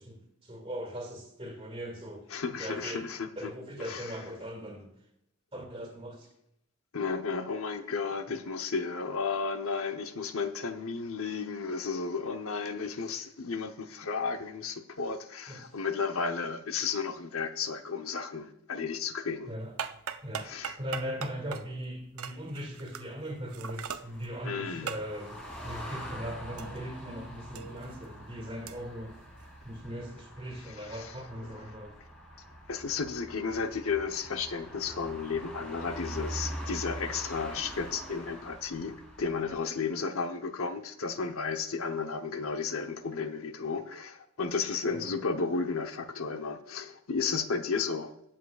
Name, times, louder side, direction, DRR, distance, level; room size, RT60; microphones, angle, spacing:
voice 1, 0.0-2.3 2.6-3.0 3.4-4.9 5.5-6.3 15.5-15.6 19.5-19.7 20.2-20.5 20.8-29.2 29.6-32.0 44.9-45.1, equal, 25° right, 2.0 m, -39 dB
voice 2, 2.3-3.5 3.8-4.2 6.9-19.5 20.4-20.8 24.4-24.9 30.7-31.1 31.5-31.6 32.7-48.1, left 5 dB, 75° left, 0.9 m, -33 dB
sound 1, 19.6-27.1 27.4-29.8, right 7 dB, 85° right, 0.6 m, -42 dB
sound 2, 23.7-39.6, equal, 5° left, 4.0 m, -44 dB
18.5 x 7.5 x 2.4 m
head